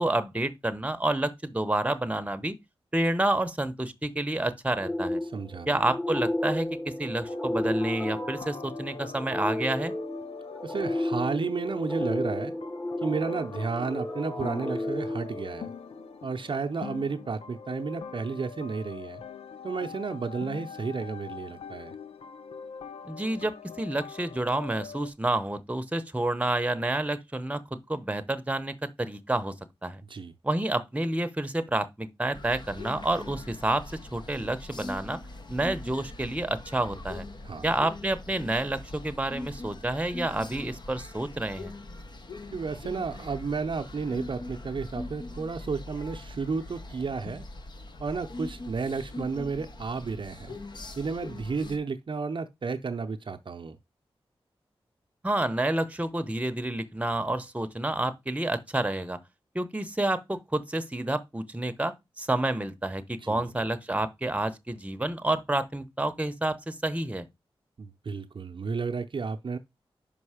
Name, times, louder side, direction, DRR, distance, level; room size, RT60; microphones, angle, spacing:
voice 1, 0.0-2.5 2.9-5.2 5.7-9.9 23.0-27.6 27.9-29.5 29.8-30.0 30.4-33.8 34.1-35.2 35.5-37.2 37.6-41.7 55.2-59.2 59.5-67.3, right 1 dB, 15° right, 0.9 m, -29 dB
sound 1, 4.8-16.1, left 1 dB, 20° left, 1.3 m, -33 dB
voice 2, 5.3-5.7 10.6-12.5 13.0-15.7 16.2-19.2 19.6-21.9 30.1-30.3 37.4-37.7 42.5-47.4 48.0-50.6 51.0-53.8 63.2-63.5 67.8-69.6, right 4 dB, 55° right, 0.6 m, -32 dB
sound 2, 7.3-25.1, left 6 dB, 90° left, 0.5 m, -43 dB
sound 3, 32.3-51.8, left 2 dB, 50° left, 1.0 m, -42 dB
5.4 x 5.4 x 4.9 m
cardioid pair, 60°, 10 cm